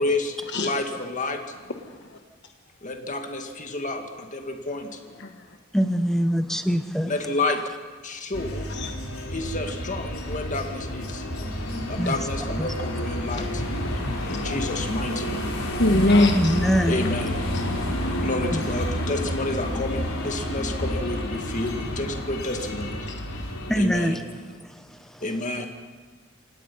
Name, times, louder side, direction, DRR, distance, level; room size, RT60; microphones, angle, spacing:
voice 1, 0.0-1.4 2.8-5.0 7.1-7.6 8.0-8.7 9.3-11.2 11.9-13.6 14.3-15.5 16.9-17.4 18.1-23.1 23.3-23.5 23.8-24.2 25.2-25.7, left 2 dB, 40° left, 4 dB, 2.1 m, -30 dB
voice 2, 1.8-2.2 5.2-5.4 8.7-8.9 11.1-11.2 13.3-13.4 14.4-14.7 15.1-15.2 15.6-16.6 17.5-17.6 23.0-23.1, left 2 dB, 55° left, 4 dB, 1.2 m, -23 dB
voice 3, 5.7-7.1 12.0-12.2 12.6-12.7 13.9-14.4 16.3-17.0 18.5-18.6 23.7-24.2 24.6-25.2, equal, ahead, 9 dB, 0.9 m, -24 dB
sound 1, 8.3-23.8, equal, 85° left, 4.1 m, -30 dB
28.0 x 18.0 x 5.6 m, 1.4 s
head